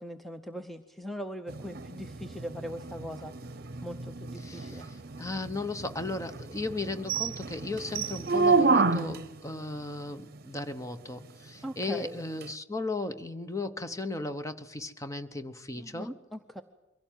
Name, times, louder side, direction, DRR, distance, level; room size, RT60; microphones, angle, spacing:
voice 1, 0.0-4.9 11.6-12.2 15.7-16.6, equal, ahead, 7 dB, 0.7 m, -41 dB
sound 1, 1.5-9.4 12.4-12.5, right 4 dB, 50° right, 0.9 m, -30 dB
voice 2, 4.4-16.1, left 2 dB, 15° left, 9 dB, 1.1 m, -36 dB
23.0 x 16.5 x 9.1 m, 1.0 s
head